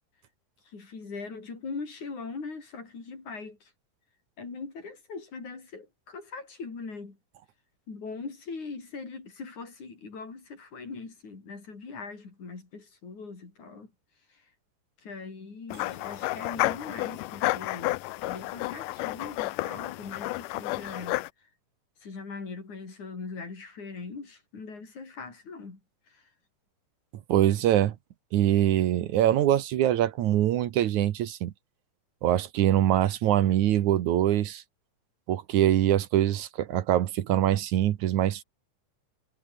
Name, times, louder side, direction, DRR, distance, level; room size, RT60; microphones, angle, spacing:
voice 1, 0.7-3.7 4.4-7.2 7.9-13.9 15.0-21.2 22.0-25.8 26.1-26.2, left 4 dB, 65° left, 7.1 m, -41 dB
sound 1, 15.7-21.3, left 19 dB, 90° left, 2.2 m, -31 dB
voice 2, 27.3-27.9 28.3-31.5 32.2-34.6 35.3-38.4, right 12 dB, 70° right, 2.5 m, -23 dB
omnidirectional pair, 3.6 m